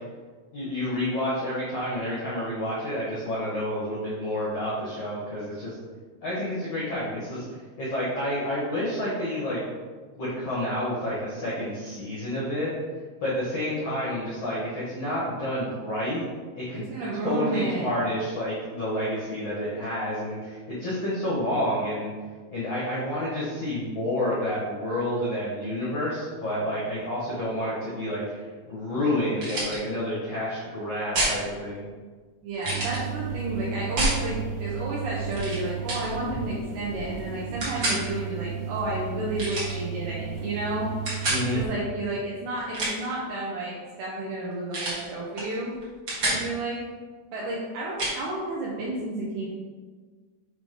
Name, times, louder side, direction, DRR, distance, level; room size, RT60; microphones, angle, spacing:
voice 1, 0.5-5.7 6.2-7.4 7.8-9.6 10.2-12.7 13.2-16.2 16.6-16.8 17.1-22.1 22.5-31.8 41.3-41.6, left 1 dB, 75° left, -8 dB, 1.4 m, -29 dB
voice 2, 16.7-17.9 32.4-40.9 41.5-45.7 46.2-46.8 47.3-49.5, right 2 dB, 75° right, -6 dB, 2.5 m, -31 dB
sound 1, 29.4-29.8 31.1-31.4 32.6-33.0 34.0-34.2 35.3-35.6 35.9-36.1 37.6-38.0 39.4-39.8 41.1-41.4 42.6-43.1 44.7-45.0 45.4-45.5 45.8-46.4 48.0-48.2, right 1 dB, 55° right, 1.2 m, -27 dB
sound 2, 32.7-41.7, right 6 dB, 90° right, 3.5 m, -34 dB
7.5 x 3.4 x 5.3 m, 1.5 s
omnidirectional pair, 5.5 m